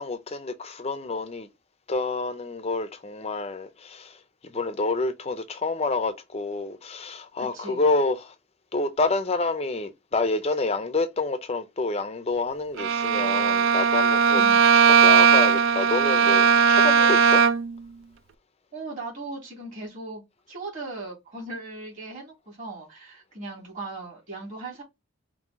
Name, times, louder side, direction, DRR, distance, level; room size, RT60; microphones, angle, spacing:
voice 1, 0.0-1.5 1.9-8.3 8.7-14.4 14.7-17.4, left 3 dB, 30° left, 0.5 m, -28 dB
voice 2, 7.5-7.8 14.3-14.6 18.7-20.2 20.5-24.8, right 2 dB, 40° right, 3.2 m, -38 dB
Bowed string instrument, 12.8-17.8, right 6 dB, 70° right, 0.4 m, -18 dB
5.5 x 2.7 x 3.6 m
head